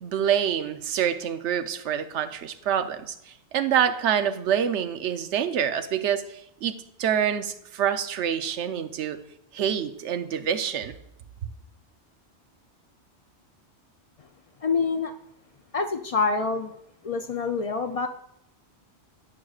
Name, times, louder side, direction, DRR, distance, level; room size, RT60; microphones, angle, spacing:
voice 1, 0.0-3.1 3.5-9.2 9.5-10.9, right 9 dB, 85° right, 10 dB, 0.9 m, -26 dB
voice 2, 14.6-15.1 15.7-16.8 17.0-18.1, left 4 dB, 65° left, 7 dB, 0.3 m, -26 dB
15.5 x 6.3 x 2.4 m, 0.80 s
omnidirectional pair, 1.1 m